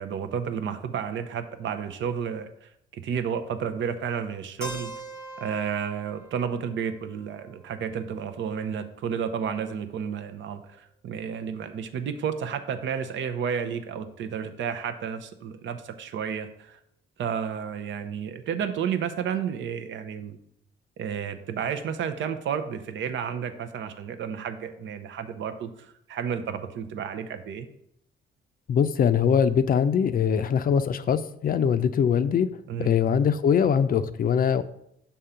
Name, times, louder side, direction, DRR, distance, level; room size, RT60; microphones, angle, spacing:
voice 1, 0.0-4.9 5.4-16.8 17.2-20.4 21.0-25.7 26.1-27.7 32.7-33.0, right 7 dB, 70° right, 9 dB, 0.7 m, -31 dB
Keyboard (musical), 4.6-8.5, right 1 dB, 5° left, 1.2 m, -43 dB
voice 2, 28.7-32.5 32.8-34.6, left 7 dB, 45° left, 12 dB, 0.4 m, -22 dB
7.0 x 3.7 x 5.6 m, 0.74 s
cardioid pair, 90°, 20 cm